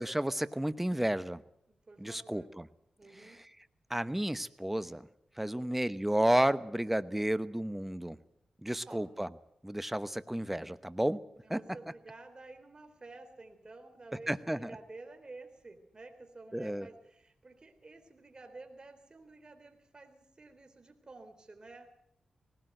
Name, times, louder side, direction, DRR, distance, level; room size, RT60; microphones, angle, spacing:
voice 1, 0.0-1.4 2.0-2.7 3.9-5.1 5.4-8.2 8.6-9.3 9.6-11.2 11.5-11.6 14.3-14.7 16.5-16.9, right 1 dB, 10° right, 14 dB, 1.0 m, -31 dB
voice 2, 1.7-2.5 3.0-3.4 5.4-5.7 8.7-9.1 11.4-21.9, right 3 dB, 40° right, 6 dB, 3.7 m, -52 dB
19.5 x 17.0 x 7.9 m, 0.73 s
cardioid pair, 55°, 2 cm